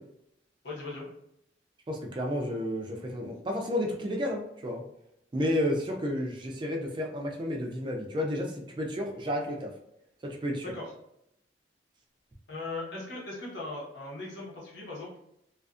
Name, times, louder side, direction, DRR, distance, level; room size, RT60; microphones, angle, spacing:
voice 1, 0.6-1.1 10.6-10.9 12.5-15.1, left 2 dB, 70° left, -4 dB, 0.9 m, -38 dB
voice 2, 1.9-4.8 5.3-9.7 10.2-10.7, left 1 dB, 25° right, 1 dB, 0.3 m, -31 dB
2.4 x 2.4 x 2.4 m, 0.77 s
head